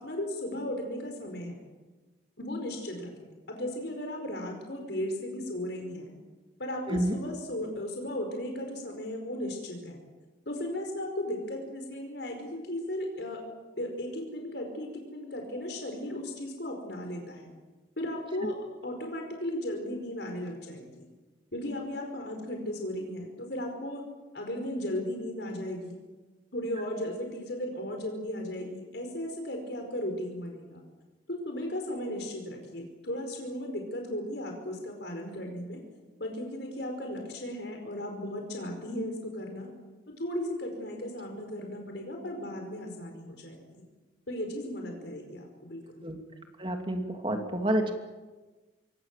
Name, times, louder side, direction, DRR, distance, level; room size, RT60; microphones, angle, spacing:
voice 1, 0.0-1.6 2.4-3.2 3.5-6.1 6.6-10.0 10.4-13.4 13.8-17.5 18.0-18.5 18.8-21.0 21.5-24.0 24.3-26.0 26.5-30.8 31.3-35.8 36.2-39.7 40.2-43.8 44.3-45.8, left 1 dB, 65° left, 3 dB, 4.9 m, -36 dB
voice 2, 6.9-7.2 46.0-46.2 46.6-47.9, right 1 dB, 25° right, 4 dB, 2.7 m, -29 dB
27.5 x 23.5 x 7.5 m, 1.2 s
head